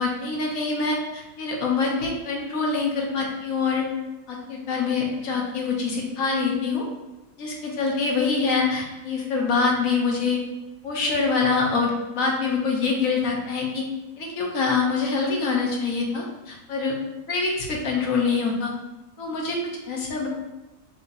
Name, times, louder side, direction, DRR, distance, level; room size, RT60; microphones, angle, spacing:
voice 1, 0.0-3.8 4.3-6.8 7.4-10.4 10.8-13.8 14.2-17.0 17.3-18.7 19.2-19.6 19.9-20.3, left 4 dB, 60° left, -1 dB, 1.0 m, -25 dB
5.8 x 2.7 x 2.6 m, 1.0 s
omnidirectional pair, 2.0 m